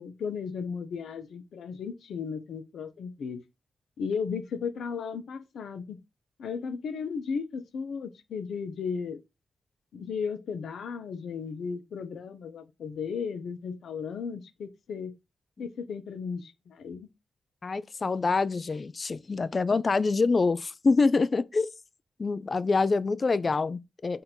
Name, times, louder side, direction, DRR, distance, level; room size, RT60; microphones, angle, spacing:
voice 1, 0.0-3.4 4.0-6.0 6.4-9.2 9.9-15.1 15.6-17.1, left 6 dB, 80° left, 0.7 m, -35 dB
voice 2, 17.6-21.7 22.2-24.2, left 4 dB, 45° left, 0.4 m, -26 dB
3.7 x 2.6 x 4.4 m
cardioid pair, 55°, 0 cm